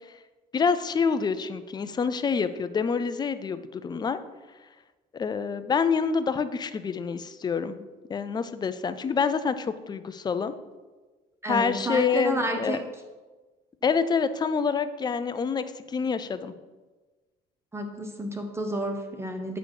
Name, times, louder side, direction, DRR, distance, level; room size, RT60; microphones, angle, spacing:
voice 1, 0.5-4.2 5.1-10.5 11.5-12.8 13.8-16.5, left 5 dB, 25° left, 11 dB, 0.4 m, -27 dB
voice 2, 11.4-12.9 17.7-19.6, right 1 dB, 15° right, 5 dB, 0.8 m, -30 dB
7.9 x 4.1 x 4.8 m, 1.3 s
cardioid pair, 110°, 17 cm